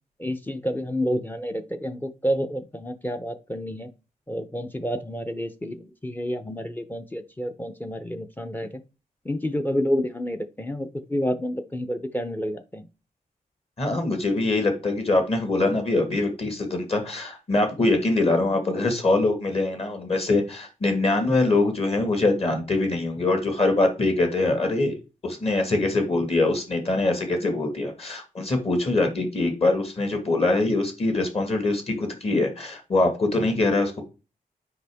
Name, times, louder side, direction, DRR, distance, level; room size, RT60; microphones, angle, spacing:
voice 1, 0.2-3.9 4.3-8.7 9.2-12.9, equal, 10° left, 10 dB, 0.5 m, -29 dB
voice 2, 13.8-25.0 25.2-34.0, left 2 dB, 40° left, 5 dB, 1.6 m, -23 dB
7.9 x 5.0 x 3.5 m, 0.30 s
wide cardioid pair, 130°, 15 cm